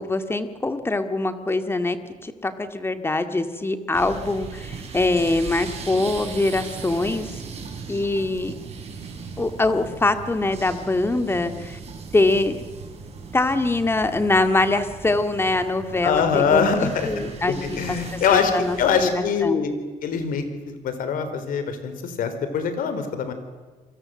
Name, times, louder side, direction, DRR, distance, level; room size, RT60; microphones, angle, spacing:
voice 1, 0.0-2.0 2.2-7.3 7.9-8.5 9.4-11.8 12.1-12.6 13.3-19.6, left 2 dB, 15° left, 8 dB, 2.1 m, -23 dB
sound 1, 3.9-19.1, right 5 dB, 50° right, 6.7 m, -38 dB
voice 2, 16.0-18.5 18.8-19.7 20.0-23.3, left 6 dB, 80° left, 9 dB, 4.1 m, -23 dB
29.0 x 24.0 x 7.8 m, 1.4 s
cardioid pair, 125°, 14 cm